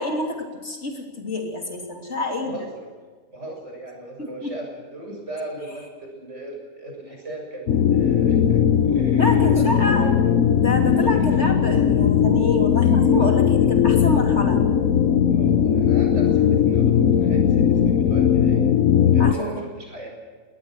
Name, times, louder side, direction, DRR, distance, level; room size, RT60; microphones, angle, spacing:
voice 1, 0.0-2.6 4.2-4.5 9.2-10.1 10.6-14.6 19.2-19.7, left 2 dB, 50° left, 2 dB, 3.3 m, -28 dB
voice 2, 2.4-2.9 3.3-9.3 9.6-10.1 12.8-12.9 15.3-18.8 19.1-20.1, right 1 dB, 55° right, 1 dB, 7.3 m, -38 dB
sound 1, 7.7-19.3, left 8 dB, 70° left, 1.3 m, -18 dB
22.0 x 19.0 x 6.3 m, 1.5 s
omnidirectional pair, 1.5 m